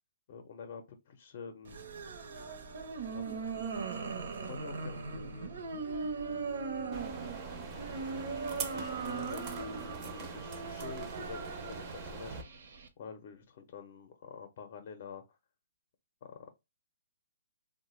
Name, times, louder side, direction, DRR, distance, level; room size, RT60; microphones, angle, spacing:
voice 1, 0.3-1.8 3.1-3.9 4.4-5.5 6.2-7.0 8.1-12.4 13.0-15.4 16.2-16.5, left 6 dB, 40° left, 0.5 m, -48 dB
sound 1, 1.6-12.9, right 4 dB, 65° right, 0.7 m, -39 dB
sound 2, 6.9-12.4, right 4 dB, 25° right, 0.5 m, -43 dB
3.2 x 2.1 x 3.1 m
hypercardioid pair, 160°, 0 cm